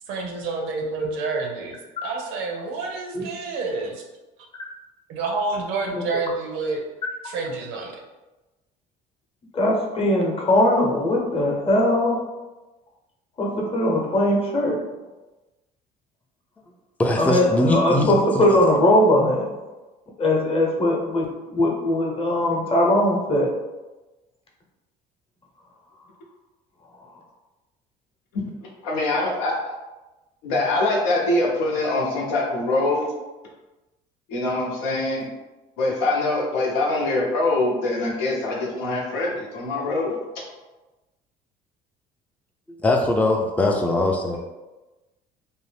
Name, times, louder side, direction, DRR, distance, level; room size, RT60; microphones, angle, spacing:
voice 1, 0.1-4.0 5.1-6.8 7.2-8.0, right 3 dB, 75° right, 2 dB, 0.6 m, -28 dB
voice 2, 9.5-12.2 13.4-14.8 17.2-19.5 20.2-23.5, left 1 dB, 30° left, -2 dB, 0.9 m, -20 dB
voice 3, 17.0-18.6 42.7-44.4, left 1 dB, 10° left, 2 dB, 0.4 m, -22 dB
voice 4, 28.3-29.7 30.4-33.1 34.3-35.3 35.8-40.2, left 2 dB, 85° left, -3 dB, 0.8 m, -24 dB
2.6 x 2.1 x 3.3 m, 1.1 s
supercardioid pair, 75°, 19 cm